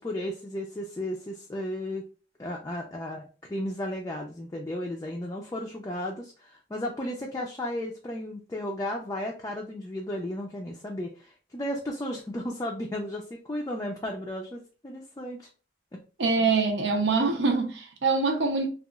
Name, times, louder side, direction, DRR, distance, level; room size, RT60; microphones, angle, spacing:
voice 1, 0.0-2.1 2.4-15.5 15.9-16.0, left 1 dB, 20° left, 0.3 m, -34 dB
voice 2, 16.2-18.7, right 4 dB, 80° right, 0.6 m, -24 dB
2.8 x 2.3 x 2.3 m
head